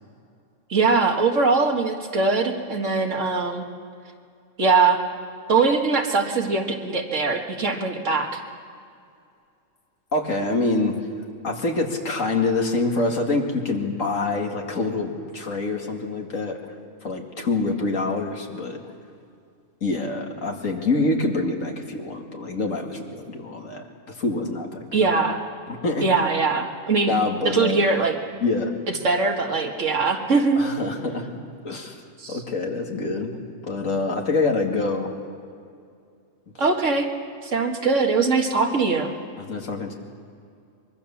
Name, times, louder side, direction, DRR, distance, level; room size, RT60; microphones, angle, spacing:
voice 1, 0.7-3.6 4.6-5.0 5.5-8.4 24.9-25.4 26.0-27.1 27.4-28.1 28.9-30.7 32.2-32.4 36.6-37.1 37.4-39.1, right 4 dB, 65° right, 3 dB, 2.1 m, -21 dB
voice 2, 10.1-11.0 11.4-16.6 17.0-18.8 19.8-25.1 25.7-26.0 27.1-27.8 28.4-28.7 30.6-31.3 31.6-32.0 32.3-33.3 33.6-35.1 39.4-39.9, left 3 dB, 75° left, 2 dB, 2.6 m, -26 dB
24.0 x 23.0 x 7.2 m, 2.4 s
omnidirectional pair, 1.4 m